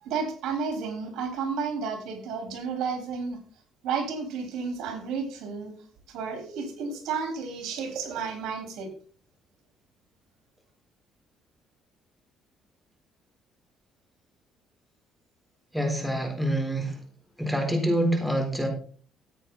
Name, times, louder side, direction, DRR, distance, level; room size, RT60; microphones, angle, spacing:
voice 1, 0.0-3.4 3.8-5.7 6.1-8.9, right 5 dB, 80° right, 4 dB, 3.9 m, -32 dB
voice 2, 15.7-17.0 17.4-18.7, right 1 dB, ahead, 2 dB, 3.8 m, -26 dB
14.0 x 9.0 x 4.0 m, 0.43 s
cardioid pair, 120°, 0 cm